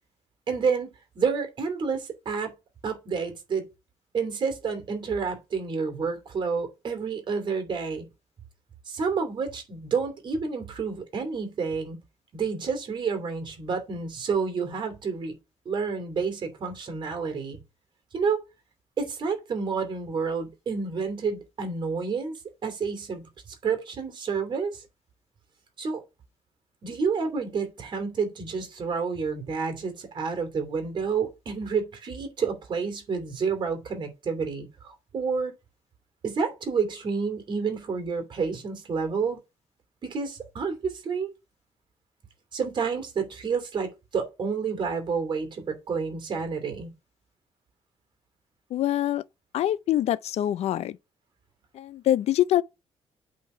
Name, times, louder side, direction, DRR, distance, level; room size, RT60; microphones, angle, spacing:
voice 1, 0.5-2.5 2.8-3.6 4.1-8.1 8.9-12.0 12.3-15.3 15.6-17.6 18.1-18.4 19.0-22.3 22.6-24.8 25.8-26.0 26.8-35.5 36.2-39.4 40.0-41.3 42.5-46.9, right 5 dB, 45° right, 2.8 m, -29 dB
voice 2, 48.7-49.2 49.5-51.0 51.7-52.6, left 12 dB, 75° left, 0.5 m, -24 dB
8.2 x 3.8 x 5.6 m
cardioid pair, 150°, 11 cm